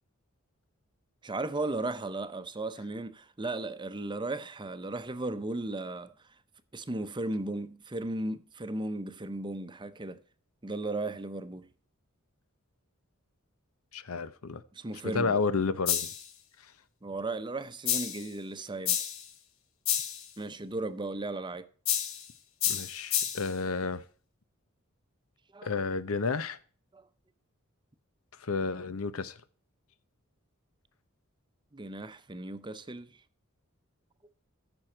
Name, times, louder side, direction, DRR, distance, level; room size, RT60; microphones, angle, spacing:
voice 1, 1.2-6.1 6.7-10.2 10.6-11.7 14.7-15.3 17.0-19.0 20.4-21.7 25.5-25.7 26.9-27.0 31.7-33.2, right 2 dB, 20° right, 0.7 m, -36 dB
voice 2, 13.9-14.6 15.1-16.1 16.6-16.7 22.6-24.0 25.6-26.6 28.4-29.4, left 4 dB, 90° left, 0.8 m, -31 dB
sound 1, 15.9-16.3 17.9-18.3 18.9-19.3 19.9-20.3 21.9-22.3 22.6-23.5, left 10 dB, 70° left, 1.2 m, -30 dB
14.0 x 6.2 x 4.4 m
head